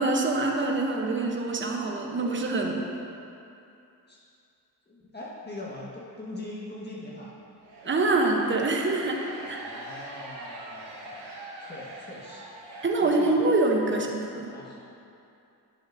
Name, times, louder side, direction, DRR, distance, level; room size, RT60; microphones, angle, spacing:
voice 1, 0.0-2.8 7.8-9.2 9.5-9.6 12.8-14.5, right 2 dB, 30° right, 1 dB, 0.9 m, -25 dB
voice 2, 4.9-7.3 9.4-11.2 11.6-12.5 13.0-13.4 14.5-14.8, left 1 dB, 25° left, -6 dB, 1.6 m, -41 dB
sound 1, 7.6-13.5, right 2 dB, 90° right, 1.4 m, -43 dB
11.0 x 5.9 x 2.7 m, 2.7 s
cardioid pair, 75°, 41 cm